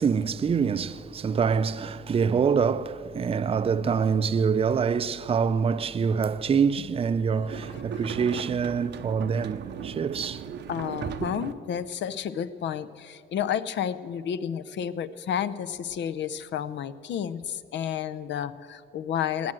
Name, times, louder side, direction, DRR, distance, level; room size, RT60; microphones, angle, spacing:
voice 1, 0.0-10.4, right 6 dB, 30° right, 0.5 m, -25 dB
sound 1, 7.5-11.5, right 8 dB, 60° right, 0.7 m, -37 dB
voice 2, 10.7-19.5, left 9 dB, 65° left, 0.6 m, -31 dB
18.5 x 7.6 x 7.5 m
cardioid pair, 90°, 20 cm